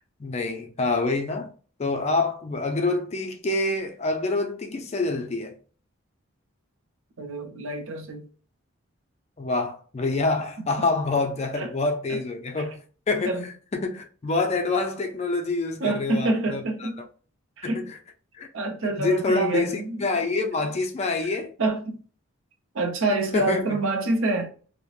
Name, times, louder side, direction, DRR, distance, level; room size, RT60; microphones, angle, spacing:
voice 1, 0.2-1.5 1.8-5.6 9.4-16.9 17.6-18.0 18.3-18.5 18.8-21.5 23.1-23.8, left 3 dB, 30° left, 0.4 m, -27 dB
voice 2, 7.2-8.2 10.6-10.9 11.5-11.7 12.1-12.2 12.6-12.7 13.3-13.5 15.8-17.0 17.6-17.9 18.5-20.0 21.6-22.0 22.7-24.5, right 2 dB, 65° right, 0.5 m, -27 dB
3.1 x 2.0 x 2.3 m
head